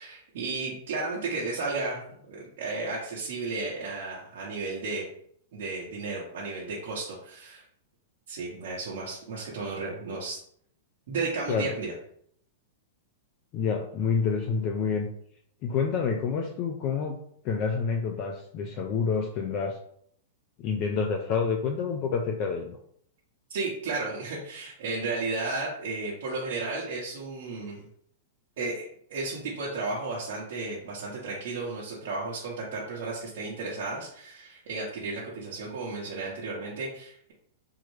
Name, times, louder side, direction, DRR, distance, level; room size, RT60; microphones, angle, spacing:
voice 1, 0.0-5.1 5.5-7.6 8.3-10.4 11.1-11.9 23.5-27.9 28.6-28.8 29.1-37.3, right 3 dB, 65° right, -5 dB, 0.8 m, -33 dB
voice 2, 13.5-15.1 15.6-17.2 17.4-19.8 20.6-22.8, left 5 dB, 40° left, 3 dB, 0.4 m, -28 dB
3.5 x 2.1 x 3.2 m, 0.66 s
hypercardioid pair, 135°, 0 cm